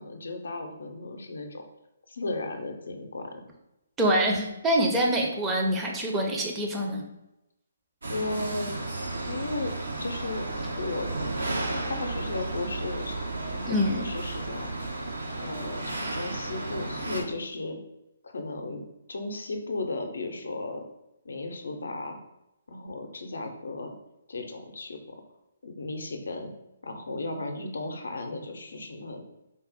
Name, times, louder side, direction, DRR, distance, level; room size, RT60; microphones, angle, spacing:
voice 1, 0.0-1.6 2.1-3.4 8.1-8.7 9.3-9.7 10.0-10.5 10.8-11.1 11.9-14.7 15.4-17.8 18.2-18.8 19.1-20.8 21.2-22.2 22.7-23.9 24.3-25.2 25.6-26.5 26.8-29.2, left 2 dB, 65° left, 4 dB, 0.6 m, -35 dB
voice 2, 4.0-7.0 13.7-14.0, equal, 10° right, 0 dB, 0.6 m, -25 dB
sound 1, 8.0-17.2, right 2 dB, 70° right, 0.7 m, -33 dB
3.7 x 2.0 x 4.0 m, 0.90 s
figure-of-eight pair, 135°, 0 cm